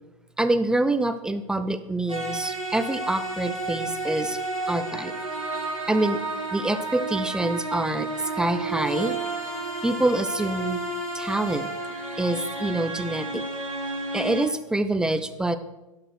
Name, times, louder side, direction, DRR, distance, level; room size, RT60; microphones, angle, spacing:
voice 1, 0.4-4.4 4.7-5.1 5.9-6.2 6.5-8.1 8.4-9.2 9.8-10.8 11.1-11.7 12.2-13.4 14.1-15.6, right 2 dB, 5° right, 11 dB, 0.6 m, -26 dB
sound 1, 2.1-14.5, right 2 dB, 90° right, 2.5 m, -31 dB
11.0 x 6.7 x 6.2 m, 1.0 s
figure-of-eight pair, 90°, 17 cm